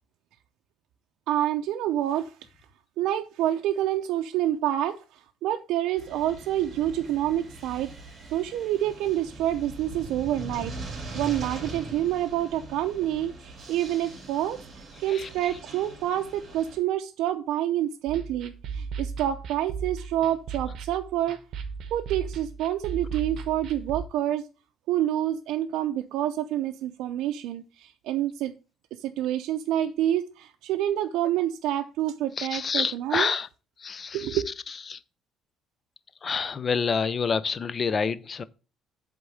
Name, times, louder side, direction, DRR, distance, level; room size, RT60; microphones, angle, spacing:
voice 1, 1.3-2.3 3.0-7.9 8.3-10.7 11.1-14.6 15.0-21.4 21.9-24.5 24.9-28.5 29.0-33.3 34.1-34.4, right 12 dB, 80° right, 0.5 m, -27 dB
sound 1, 6.0-16.8, right 2 dB, 30° right, 2.7 m, -41 dB
sound 2, 18.1-24.0, right 5 dB, 55° right, 1.1 m, -36 dB
voice 2, 32.4-33.5 33.8-34.4 34.9-35.0 36.2-38.4, left 5 dB, 30° left, 0.4 m, -28 dB
8.1 x 3.7 x 6.2 m
cardioid pair, 160°, 0 cm